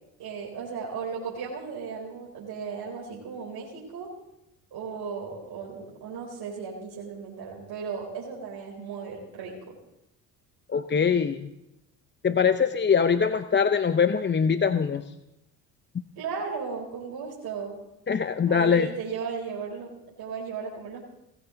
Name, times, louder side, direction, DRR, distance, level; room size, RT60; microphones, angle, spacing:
voice 1, 0.2-4.1 4.7-9.7 16.2-17.8 18.5-19.9 20.2-21.0, right 5 dB, 60° right, -3 dB, 4.3 m, -36 dB
voice 2, 10.7-11.5 12.2-15.1 18.1-18.9, left 6 dB, 25° left, 10 dB, 0.7 m, -23 dB
17.5 x 15.5 x 3.9 m, 0.88 s
supercardioid pair, 70°, 42 cm